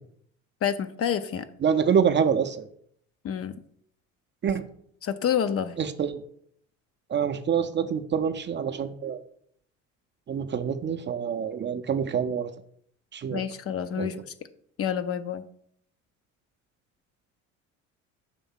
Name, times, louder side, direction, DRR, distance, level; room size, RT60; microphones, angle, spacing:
voice 1, 0.6-1.5 3.2-3.5 5.0-5.7 13.3-14.3 14.8-15.4, left 8 dB, 40° left, 11 dB, 0.5 m, -28 dB
voice 2, 1.6-2.7 4.4-4.6 5.8-6.2 7.1-9.2 10.3-12.5 13.1-13.4 14.0-14.1, right 7 dB, 30° right, 9 dB, 0.5 m, -26 dB
5.8 x 3.5 x 5.5 m, 0.65 s
hypercardioid pair, 60°, 38 cm